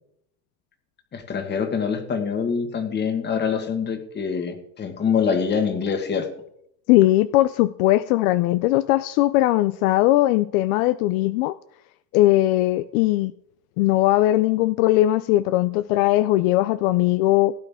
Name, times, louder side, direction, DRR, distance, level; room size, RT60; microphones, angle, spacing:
voice 1, 1.1-6.3, left 6 dB, 25° left, 7 dB, 1.6 m, -25 dB
voice 2, 6.9-11.5 12.1-13.3 13.8-17.5, left 16 dB, 70° left, 15 dB, 0.6 m, -19 dB
17.0 x 9.2 x 3.6 m, 0.73 s
cardioid pair, 150°, 44 cm